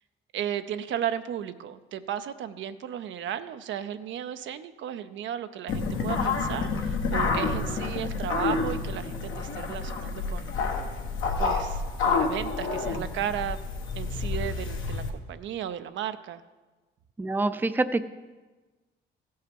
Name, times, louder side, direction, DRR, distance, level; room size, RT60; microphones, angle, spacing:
voice 1, 0.3-10.5 11.4-13.6 13.9-16.4, right 10 dB, 70° right, 11 dB, 0.5 m, -34 dB
sound 1, 5.7-15.1, left 4 dB, 80° left, 1.3 m, -29 dB
voice 2, 17.2-18.0, right 2 dB, 10° right, 11 dB, 0.4 m, -26 dB
15.5 x 5.5 x 5.3 m, 1.3 s
cardioid pair, 90°, 20 cm